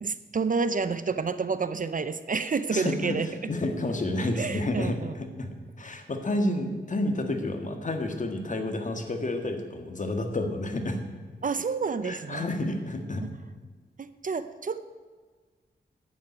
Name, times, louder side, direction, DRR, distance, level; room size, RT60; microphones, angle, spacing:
voice 1, 0.0-3.3 4.4-5.1 11.4-12.4 13.2-13.3 14.0-14.8, right 5 dB, 45° right, 13 dB, 0.6 m, -29 dB
voice 2, 2.7-11.0 12.0-13.2, left 1 dB, 45° left, 5 dB, 1.8 m, -30 dB
10.5 x 8.8 x 9.2 m, 1.4 s
wide cardioid pair, 110°, 18 cm